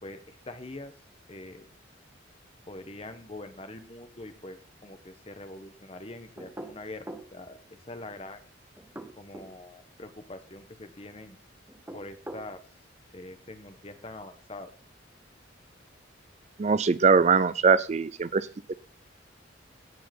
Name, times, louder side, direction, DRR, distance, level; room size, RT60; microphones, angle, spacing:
voice 1, 0.0-0.9 1.3-1.7 2.7-7.6 7.9-8.4 9.2-11.4 11.9-12.6 13.1-14.7, left 2 dB, 30° left, 9 dB, 1.2 m, -43 dB
sound 1, 6.4-7.3 8.8-9.5 11.7-12.5, right 1 dB, 10° right, 1.3 m, -42 dB
voice 2, 16.6-18.7, right 5 dB, 35° right, 17 dB, 0.4 m, -22 dB
17.5 x 5.8 x 4.3 m, 0.39 s
head